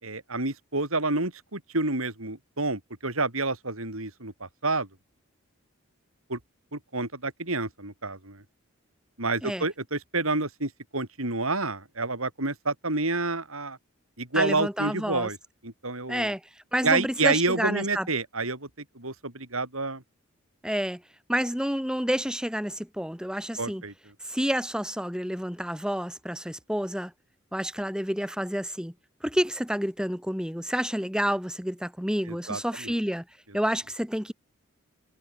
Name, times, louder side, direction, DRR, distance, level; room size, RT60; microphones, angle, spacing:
voice 1, 0.0-4.9 6.3-6.4 6.7-8.4 9.2-13.8 14.2-15.4 15.6-16.3 16.8-18.7 18.9-20.0 23.6-23.9 32.3-32.9, right 3 dB, 80° right, 6.2 m, -29 dB
voice 2, 14.3-15.3 16.1-16.4 16.7-18.1 20.6-21.0 21.3-23.8 24.2-27.1 27.5-28.9 29.2-33.2 33.5-34.3, equal, 5° right, 4.8 m, -29 dB
head